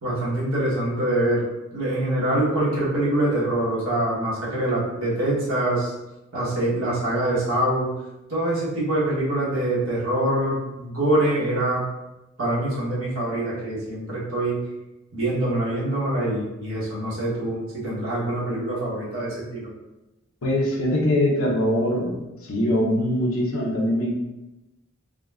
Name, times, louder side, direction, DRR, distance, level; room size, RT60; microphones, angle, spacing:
voice 1, 0.0-1.4 1.7-5.9 6.3-7.9 8.3-11.9 12.4-14.6 15.1-19.7, right 1 dB, 80° right, -7 dB, 1.1 m, -24 dB
voice 2, 20.4-22.2 22.4-24.1, left 1 dB, 90° left, -2 dB, 0.6 m, -22 dB
3.6 x 2.1 x 2.3 m, 0.98 s
head